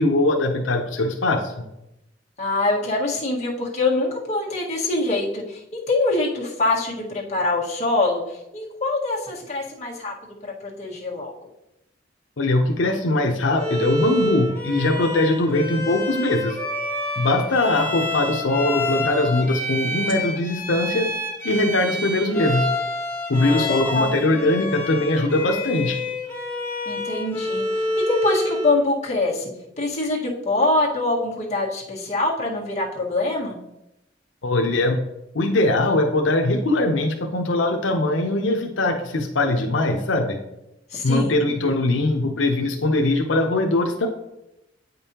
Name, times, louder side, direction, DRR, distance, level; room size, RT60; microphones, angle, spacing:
voice 1, 0.0-1.5 12.4-16.6 17.2-21.1 21.4-22.6 23.3-26.0 34.4-35.0 35.3-40.4 41.0-44.1, left 2 dB, 90° left, 3 dB, 0.7 m, -21 dB
voice 2, 2.4-10.1 10.6-11.3 23.3-24.2 26.8-29.5 29.8-33.5 40.9-41.4, left 2 dB, 40° left, -5 dB, 1.6 m, -24 dB
Bowed string instrument, 13.6-28.8, left 1 dB, 10° left, 1.4 m, -28 dB
sound 1, 15.5-17.2 19.9-20.1, right 5 dB, 75° right, 1.0 m, -45 dB
8.8 x 5.3 x 2.9 m, 0.90 s
head